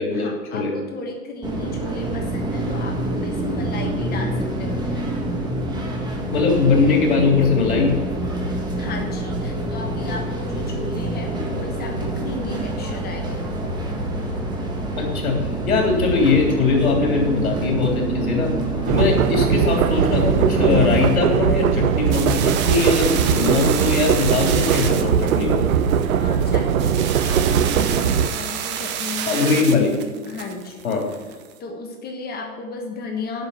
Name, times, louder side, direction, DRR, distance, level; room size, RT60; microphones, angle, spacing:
voice 1, 0.1-5.2 8.8-13.8 26.2-29.8 30.3-30.8 31.6-33.5, left 3 dB, 20° left, 3 dB, 1.2 m, -34 dB
sound 1, 1.4-21.1, right 1 dB, 10° right, 1.6 m, -26 dB
voice 2, 6.3-7.9 15.0-15.4 15.7-18.6 18.9-25.6 29.3-30.0 30.8-31.1, left 4 dB, 70° left, 0 dB, 3.5 m, -20 dB
sound 2, 18.8-28.3, right 8 dB, 70° right, 0.8 m, -20 dB
sound 3, 22.1-31.5, right 9 dB, 25° right, 0.8 m, -30 dB
8.1 x 6.8 x 8.0 m, 1.4 s
hypercardioid pair, 115°, 44 cm